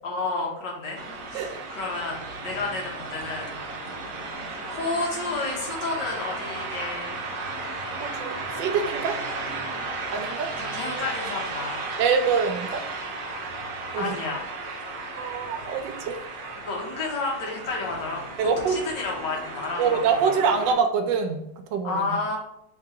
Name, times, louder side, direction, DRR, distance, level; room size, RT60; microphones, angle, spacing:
voice 1, 0.0-1.0 1.3-2.2 2.4-3.5 4.2-4.4 4.7-7.2 10.5-11.9 14.0-14.5 16.6-18.2 18.6-20.4 21.8-22.4, left 3 dB, 75° left, -1 dB, 1.7 m, -31 dB
sound 1, 0.9-20.7, right 3 dB, 60° right, 1.1 m, -34 dB
voice 2, 8.0-9.1 10.1-10.5 12.0-12.8 13.9-14.2 15.1-16.2 18.4-18.8 19.8-21.4 21.7-22.1, right 6 dB, 90° right, 5 dB, 1.3 m, -25 dB
3.8 x 2.7 x 3.7 m, 0.76 s
omnidirectional pair, 1.9 m